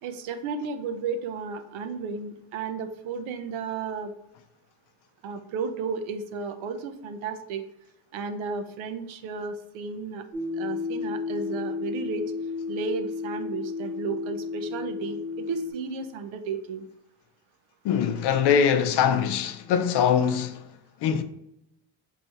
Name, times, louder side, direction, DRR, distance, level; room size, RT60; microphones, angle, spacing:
voice 1, 0.0-4.1 5.2-7.6 8.1-10.2 10.6-12.2 12.7-16.8, right 5 dB, 75° right, 0.7 m, -33 dB
sound 1, 10.3-15.7, left 4 dB, 25° right, 1.1 m, -32 dB
voice 2, 17.8-20.6 21.0-21.2, left 7 dB, 60° left, 0.6 m, -22 dB
4.1 x 3.3 x 3.4 m
cardioid pair, 155°, 48 cm